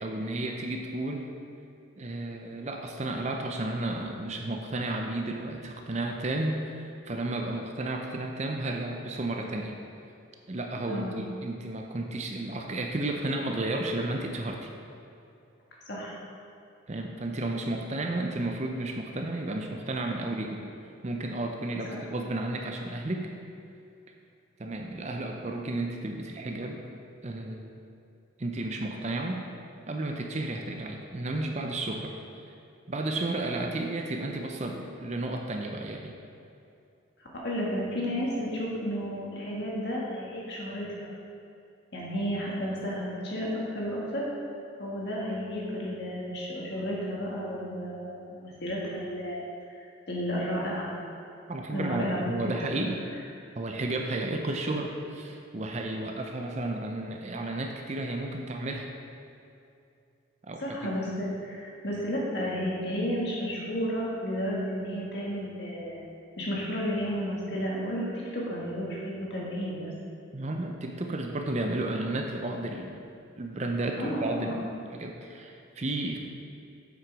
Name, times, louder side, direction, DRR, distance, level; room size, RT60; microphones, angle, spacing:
voice 1, 0.0-1.3 2.0-9.7 10.5-14.7 16.9-20.7 21.0-23.3 24.6-26.8 27.2-27.7 28.4-29.4 29.8-32.1 32.9-36.1 51.5-53.0 53.5-58.9 60.5-60.8 70.3-73.0 73.4-74.7 74.9-76.2, right 2 dB, 35° right, 3 dB, 0.5 m, -32 dB
voice 2, 37.2-41.1 41.9-44.3 44.8-49.4 49.7-49.8 50.1-50.9 51.7-52.2 60.6-66.0 66.4-68.0 68.3-69.9 74.0-74.6, equal, 55° left, -4 dB, 1.8 m, -32 dB
7.7 x 6.1 x 4.7 m, 2.6 s
head